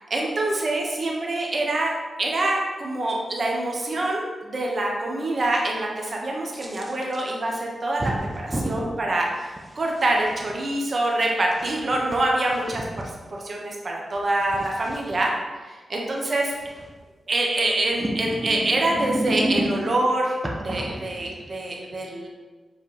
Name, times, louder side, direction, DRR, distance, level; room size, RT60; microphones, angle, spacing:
voice 1, 0.1-1.9 2.2-15.3 15.6-16.5 17.3-22.3, right 2 dB, 50° right, -1 dB, 1.1 m, -25 dB
sound 1, 6.5-7.2 8.0-8.9 9.6-10.5 11.5-13.1 14.2-15.1 16.6-17.0 17.9-20.0 20.4-21.6, right 1 dB, 20° right, 0.9 m, -30 dB
7.2 x 4.1 x 3.4 m, 1.3 s
cardioid pair, 75°, 0 cm